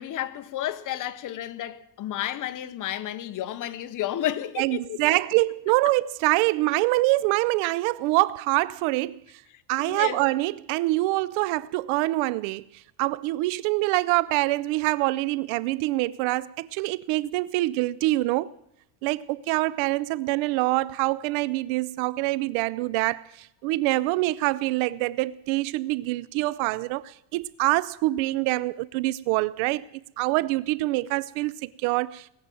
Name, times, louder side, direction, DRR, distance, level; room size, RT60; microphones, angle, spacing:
voice 1, 0.0-5.0 9.8-10.2, left 12 dB, 40° left, 0.9 m, -31 dB
voice 2, 4.6-9.4 9.7-18.5 19.0-29.8 30.2-32.3, right 19 dB, 80° right, 0.6 m, -25 dB
19.0 x 7.5 x 9.1 m
cardioid pair, 145°, 46 cm